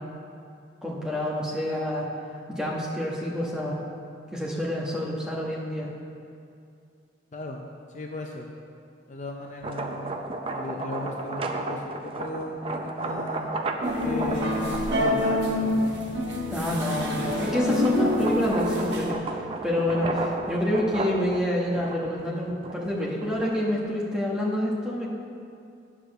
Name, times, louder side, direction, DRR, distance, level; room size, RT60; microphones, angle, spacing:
voice 1, 0.8-2.1 2.5-3.8 4.3-5.9 16.5-25.1, left 1 dB, 5° right, -5 dB, 1.2 m, -28 dB
voice 2, 7.3-7.6 7.9-8.5 9.1-10.2 10.5-16.4, left 1 dB, 40° left, 1 dB, 0.5 m, -36 dB
sound 1, 9.5-16.1 16.6-23.8, right 2 dB, 30° right, 0.5 m, -34 dB
sound 2, 13.8-19.1, left 1 dB, 65° right, 1.2 m, -26 dB
9.6 x 4.9 x 6.5 m, 2.5 s
head